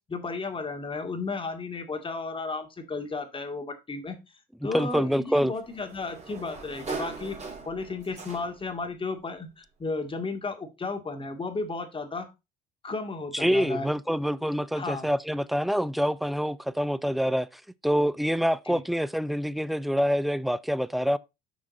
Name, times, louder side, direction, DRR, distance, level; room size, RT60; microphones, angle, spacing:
voice 1, 0.1-4.2 4.6-7.4 7.7-12.3 12.8-13.9 14.7-15.1 18.7-18.8, left 3 dB, 25° left, 2.0 m, -34 dB
voice 2, 4.7-5.5 13.3-21.2, equal, ahead, 0.4 m, -26 dB
Sliding door, 4.9-8.8, right 4 dB, 35° right, 3.0 m, -40 dB
6.5 x 6.1 x 4.1 m
supercardioid pair, 90°, 20 cm